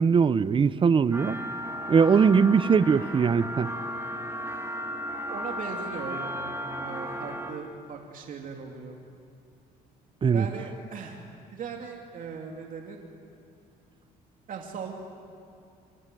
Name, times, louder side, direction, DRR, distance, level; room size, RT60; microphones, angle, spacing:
voice 1, 0.0-1.4 1.9-3.7 10.2-10.5, right 6 dB, 30° right, 16 dB, 0.8 m, -21 dB
sound 1, 1.1-7.5, equal, 15° right, 2.2 m, -35 dB
voice 2, 5.2-9.0 10.3-11.2 11.5-13.0 14.5-14.9, right 5 dB, 55° right, 1 dB, 2.9 m, -39 dB
25.0 x 24.5 x 9.4 m, 2.5 s
cardioid pair, 110°, 17 cm